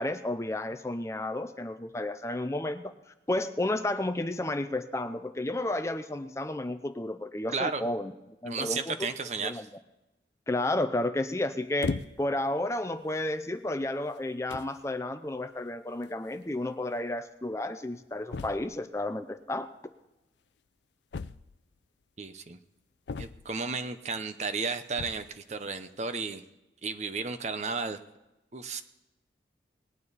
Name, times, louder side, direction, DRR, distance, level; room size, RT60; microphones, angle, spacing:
voice 1, 0.0-8.1 8.4-9.1 9.4-9.6 10.5-19.7, left 1 dB, 15° left, 10 dB, 0.5 m, -32 dB
voice 2, 8.5-9.6 22.2-22.6 23.2-26.4 26.8-28.0 28.5-28.8, right 4 dB, 40° right, 9 dB, 0.7 m, -33 dB
sound 1, 11.8-12.4 13.2-13.4 14.2-14.3 14.5-14.8 16.0-16.1 16.3-16.4 16.7-16.8 18.3-18.8 21.1-21.8 23.1-23.7 24.9-25.4, left 4 dB, 75° left, 0.4 m, -37 dB
19.5 x 9.5 x 4.1 m, 0.97 s
head